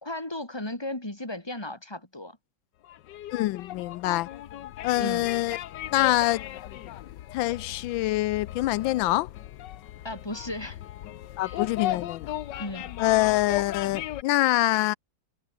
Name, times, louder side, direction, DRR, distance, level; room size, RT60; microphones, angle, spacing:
voice 1, 0.0-2.4 5.0-5.3 10.0-10.8 11.4-11.6 12.6-12.9, left 1 dB, 10° left, 3.5 m, -35 dB
sound 1, 2.8-14.2, left 12 dB, 70° left, 1.4 m, -37 dB
voice 2, 3.3-4.3 4.8-5.6 5.9-6.4 7.3-9.3 11.4-12.3 13.0-14.9, left 17 dB, 90° left, 1.4 m, -25 dB
omnidirectional pair, 2.1 m